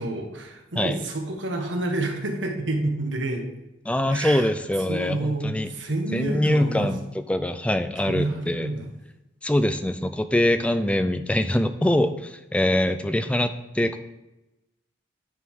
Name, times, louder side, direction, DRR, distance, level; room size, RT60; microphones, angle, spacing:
voice 1, 0.0-3.4 4.1-4.5 4.9-6.9 8.0-8.8, right 2 dB, 85° right, 2 dB, 1.2 m, -29 dB
voice 2, 3.9-5.7 6.1-8.7 9.4-14.0, left 1 dB, 5° left, 9 dB, 0.3 m, -24 dB
9.5 x 3.7 x 4.7 m, 0.97 s
head